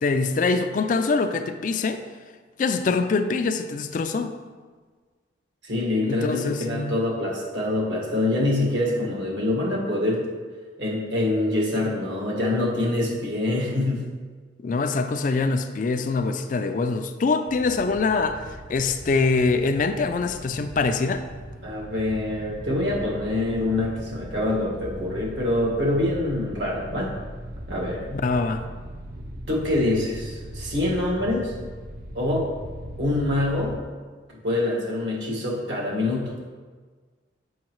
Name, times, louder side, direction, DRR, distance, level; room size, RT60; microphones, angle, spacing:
voice 1, 0.0-2.0 2.6-4.3 6.0-7.0 14.6-21.2 28.1-28.6, left 4 dB, 45° left, 8 dB, 0.3 m, -24 dB
voice 2, 5.6-10.2 10.8-14.1 21.6-27.1 27.7-28.0 29.5-31.5 32.1-32.5 33.0-33.8 34.4-36.3, left 1 dB, 75° right, -3 dB, 1.6 m, -25 dB
sound 1, 17.5-33.8, right 1 dB, 50° right, 0.5 m, -39 dB
7.4 x 5.5 x 3.0 m, 1.5 s
head